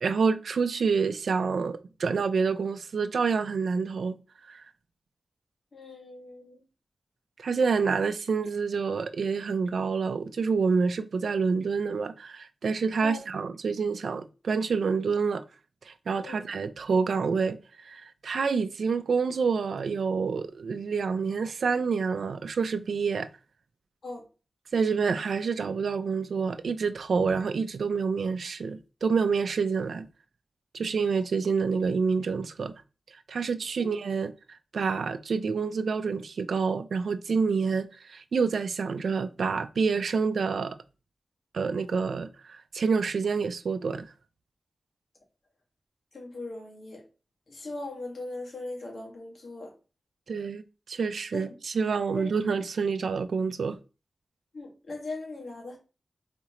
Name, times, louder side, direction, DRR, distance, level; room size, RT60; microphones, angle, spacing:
voice 1, 0.0-4.1 4.5-4.6 7.4-15.4 15.8-17.6 17.8-23.3 24.7-30.1 30.7-32.7 33.3-40.8 41.5-44.1 50.3-50.6 50.9-53.8, right 5 dB, 85° right, 0.4 m, -28 dB
voice 2, 5.7-6.6 13.0-13.2 16.2-16.4 24.0-24.2 33.8-33.9 46.1-47.0 47.5-49.7 51.3-51.5 52.2-52.3 54.5-55.8, left 2 dB, 65° left, 1.7 m, -39 dB
4.2 x 3.7 x 3.0 m
wide cardioid pair, 120°, 0 cm